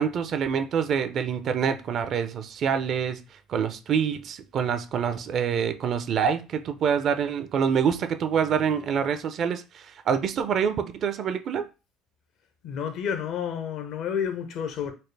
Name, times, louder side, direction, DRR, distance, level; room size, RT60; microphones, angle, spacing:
voice 1, 0.0-3.2 3.5-11.7, right 7 dB, 55° right, 0.5 m, -26 dB
voice 2, 12.6-14.9, left 8 dB, 65° left, 0.8 m, -30 dB
4.2 x 2.1 x 3.3 m
hypercardioid pair, 70°, 0 cm